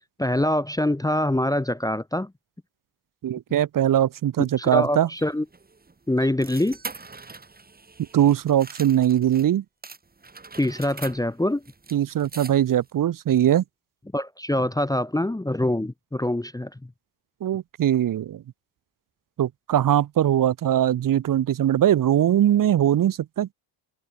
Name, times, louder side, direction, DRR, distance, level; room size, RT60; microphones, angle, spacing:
voice 1, 0.2-2.3 4.6-5.4 6.1-6.8 10.6-11.6 14.1-16.7, left 1 dB, 10° left, 0.9 m, -24 dB
voice 2, 3.2-5.1 8.1-9.6 11.9-13.6 17.4-18.4 19.4-23.5, right 11 dB, 45° right, 0.7 m, -21 dB
sound 1, 4.7-9.5 9.8-12.9, right 3 dB, 20° right, 1.7 m, -43 dB
supercardioid pair, 75°, 48 cm